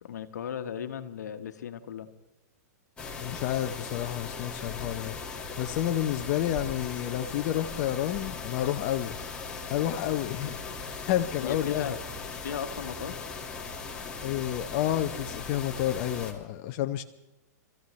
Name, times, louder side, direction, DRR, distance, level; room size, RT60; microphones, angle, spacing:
voice 1, 0.0-2.1 11.4-12.0 12.4-13.2, left 8 dB, 80° left, 8 dB, 1.2 m, -36 dB
sound 1, 3.0-16.3, left 4 dB, 10° left, 1.8 m, -38 dB
voice 2, 3.2-5.1 5.6-9.2 9.7-11.9 14.2-17.0, left 12 dB, 40° left, 6 dB, 0.6 m, -30 dB
25.5 x 14.0 x 3.2 m, 0.95 s
hypercardioid pair, 140°, 9 cm